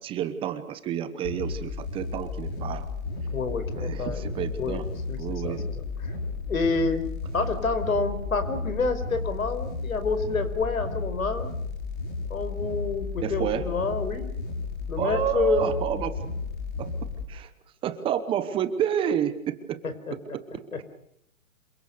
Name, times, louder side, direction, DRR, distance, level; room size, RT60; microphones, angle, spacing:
voice 1, 0.0-2.9 3.7-4.9 5.2-5.6 13.2-13.6 15.0-16.1 16.8-16.9 17.3-17.5 17.8-19.8 20.1-20.8, right 9 dB, 15° right, 12 dB, 1.0 m, -29 dB
sound 1, 1.2-17.2, left 4 dB, 40° left, 7.2 m, -33 dB
voice 2, 3.3-4.3 4.6-5.2 5.4-6.1 6.5-7.0 7.3-11.5 12.3-14.3 14.9-15.7 19.8-20.1 20.7-20.8, left 4 dB, 80° left, 10 dB, 5.3 m, -28 dB
27.5 x 24.0 x 6.8 m, 0.71 s
hypercardioid pair, 145°, 41 cm